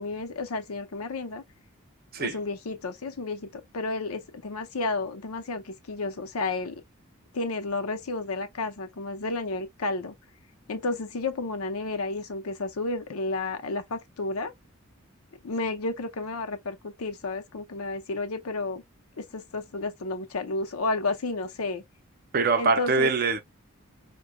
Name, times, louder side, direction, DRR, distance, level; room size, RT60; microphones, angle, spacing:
voice 1, 0.0-1.4 2.2-6.8 7.3-10.2 10.7-14.5 15.4-18.8 19.2-21.8 22.6-23.1, left 3 dB, 90° left, 0.7 m, -31 dB
voice 2, 22.3-23.4, right 4 dB, 45° right, 0.6 m, -23 dB
4.8 x 2.2 x 2.2 m
head